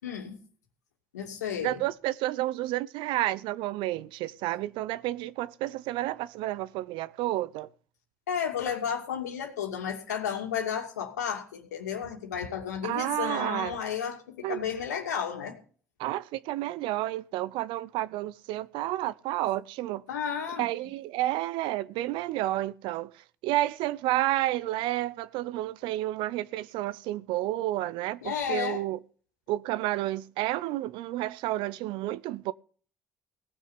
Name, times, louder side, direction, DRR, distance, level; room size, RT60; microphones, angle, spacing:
voice 1, 0.0-0.4 1.1-1.8 8.3-15.6 20.1-20.7 28.2-28.8, left 8 dB, 90° left, 2.5 m, -32 dB
voice 2, 1.6-7.7 12.8-13.8 14.4-14.6 16.0-20.0 20.6-29.0 29.5-32.5, right 16 dB, 70° right, 0.8 m, -30 dB
17.5 x 6.5 x 8.0 m
hypercardioid pair, 55°, 9 cm